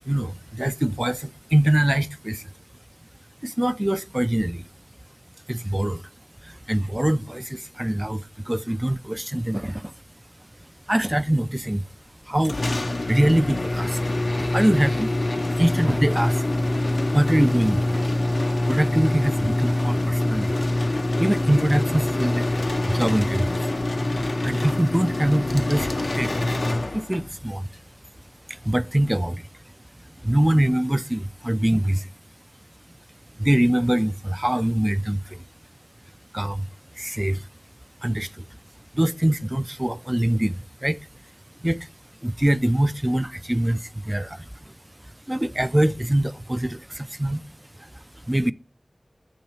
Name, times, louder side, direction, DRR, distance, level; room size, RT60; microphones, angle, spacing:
voice 1, 0.1-2.5 3.4-4.6 5.5-6.0 6.4-9.9 10.9-11.8 12.2-12.6 13.1-14.1 14.4-15.1 15.6-16.4 17.1-18.0 18.6-20.5 21.2-22.5 22.9-23.7 24.4-26.3 26.9-27.7 28.5-29.5 30.2-32.1 33.4-35.4 36.3-36.7 37.0-37.5 38.0-38.4 38.9-41.1 41.6-41.9 42.2-44.7 45.3-47.4 47.8-48.5, right 1 dB, 20° right, 0.4 m, -23 dB
sound 1, 12.4-27.4, left 1 dB, 65° left, 0.5 m, -24 dB
8.6 x 3.1 x 4.2 m
wide cardioid pair, 45°, 0 cm